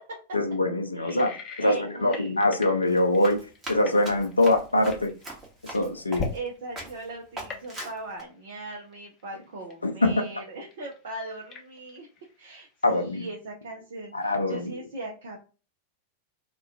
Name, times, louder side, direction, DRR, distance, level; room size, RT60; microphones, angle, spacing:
voice 1, 0.3-1.3 1.6-5.1 5.6-6.3 9.8-10.3 12.8-13.3 14.1-14.7, left 1 dB, 80° left, 0.3 m, -24 dB
voice 2, 0.9-2.3 6.3-12.1 12.4-15.5, right 2 dB, 60° right, 0.4 m, -39 dB
sound 1, 1.0-6.6 6.8-7.2 7.5-8.2 8.6-10.4 10.7-12.6 12.8-13.3, left 5 dB, 30° left, 0.5 m, -39 dB
Run, 2.9-6.5 6.8-7.0 7.4-8.2, right 1 dB, 15° right, 0.9 m, -41 dB
2.3 x 2.1 x 2.5 m
figure-of-eight pair, 90°, 0 cm